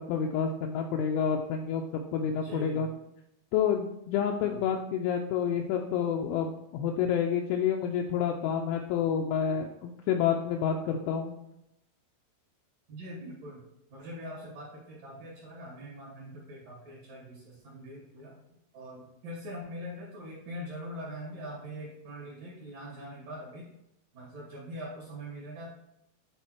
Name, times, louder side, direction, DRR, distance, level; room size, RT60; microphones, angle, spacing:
voice 1, 0.1-2.9 3.5-11.3, left 7 dB, 85° left, 2 dB, 2.7 m, -29 dB
voice 2, 2.4-2.9 4.4-4.6 12.9-13.6 13.9-18.4 18.7-23.6 24.1-25.7, equal, 55° right, -4 dB, 2.9 m, -42 dB
10.0 x 3.7 x 4.5 m, 0.84 s
omnidirectional pair, 6.0 m